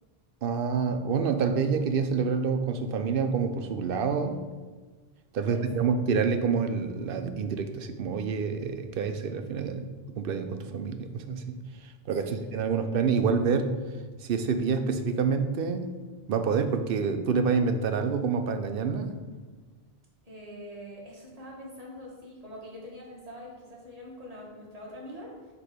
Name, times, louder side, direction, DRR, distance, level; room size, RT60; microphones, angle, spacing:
voice 1, 0.4-4.4 5.3-9.9 10.2-13.7 14.2-15.9 16.3-19.1, right 5 dB, 65° right, 8 dB, 0.7 m, -27 dB
voice 2, 5.4-5.9 12.2-12.8 20.2-25.5, equal, 40° right, -4 dB, 1.6 m, -44 dB
4.9 x 4.4 x 5.0 m, 1.4 s
omnidirectional pair, 1.0 m